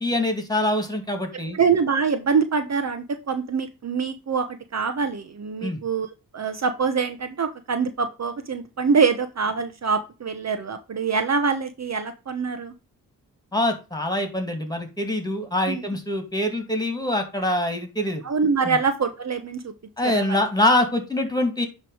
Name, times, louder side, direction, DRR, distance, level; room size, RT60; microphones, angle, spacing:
voice 1, 0.0-1.6 5.6-5.8 13.5-18.2 18.6-18.8 20.0-21.7, left 1 dB, 10° left, 6 dB, 2.4 m, -24 dB
voice 2, 1.5-4.5 4.7-6.1 6.3-12.7 15.7-15.8 18.2-19.7 20.0-20.4, right 5 dB, 50° right, 9 dB, 0.9 m, -24 dB
9.7 x 3.2 x 4.9 m, 0.30 s
cardioid pair, 60°, 35 cm